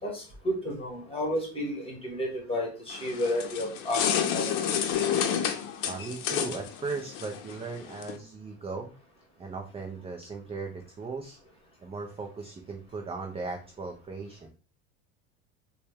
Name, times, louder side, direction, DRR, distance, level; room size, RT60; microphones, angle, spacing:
voice 1, 0.0-4.5, left 1 dB, 15° left, 0 dB, 1.7 m, -32 dB
sound 1, 2.9-8.2, left 8 dB, 60° left, 0.7 m, -30 dB
voice 2, 5.8-8.9 9.4-11.4 11.8-14.5, right 4 dB, 15° right, 3 dB, 0.4 m, -37 dB
4.0 x 2.3 x 3.3 m, 0.36 s
supercardioid pair, 105°, 37 cm